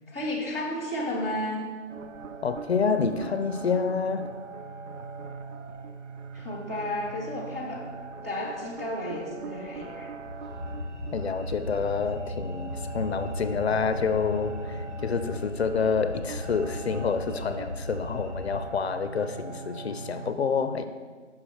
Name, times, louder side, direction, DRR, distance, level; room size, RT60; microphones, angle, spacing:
voice 1, 0.1-1.7 6.3-7.8 8.2-10.1, left 1 dB, 15° right, -7 dB, 0.5 m, -32 dB
sound 1, 1.9-20.3, right 4 dB, 80° right, 0.6 m, -42 dB
voice 2, 2.4-4.3 11.1-20.9, left 5 dB, 60° left, 11 dB, 0.5 m, -28 dB
sound 2, 10.2-18.6, left 1 dB, 20° left, 0.8 m, -37 dB
5.9 x 4.5 x 6.3 m, 1.5 s
figure-of-eight pair, 155°, 36 cm